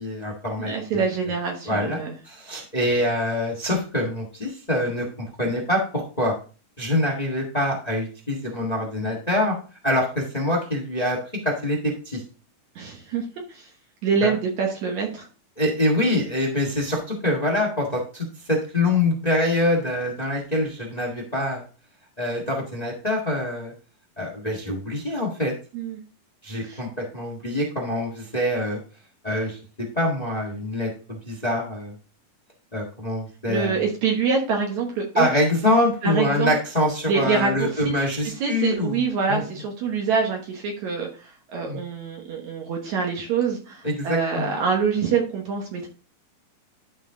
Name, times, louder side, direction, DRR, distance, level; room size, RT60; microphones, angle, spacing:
voice 1, 0.0-1.1 1.6-5.0 5.4-6.3 6.8-9.6 9.8-11.2 11.4-12.2 14.2-14.3 15.6-21.6 22.2-23.7 24.2-25.5 26.4-28.8 29.2-29.6 29.9-31.9 32.7-33.8 35.1-39.4 41.7-41.8 43.8-44.5, left 1 dB, 25° left, -1 dB, 0.8 m, -25 dB
voice 2, 0.6-2.2 12.8-13.7 14.0-15.3 25.7-26.0 26.6-26.8 33.5-35.3 36.0-36.5 37.1-38.1 38.4-45.9, right 5 dB, 65° right, 1 dB, 2.3 m, -25 dB
12.5 x 4.4 x 3.7 m, 0.37 s
omnidirectional pair, 3.8 m